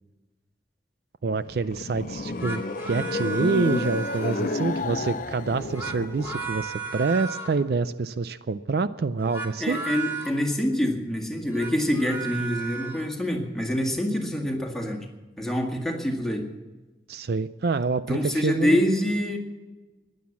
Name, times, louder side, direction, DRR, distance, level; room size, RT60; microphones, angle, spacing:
voice 1, 1.2-9.8 17.1-18.9, right 4 dB, 60° right, 14 dB, 0.4 m, -27 dB
sound 1, 1.4-6.7, left 3 dB, 45° left, 0.6 m, -31 dB
sound 2, 2.2-4.7 5.5-7.6 9.2-10.3 11.4-13.1, right 5 dB, 15° right, 2.2 m, -35 dB
voice 2, 9.6-15.1 15.4-16.4 18.1-19.4, left 1 dB, 5° left, 1 dB, 1.9 m, -26 dB
15.5 x 10.5 x 7.2 m, 1.2 s
head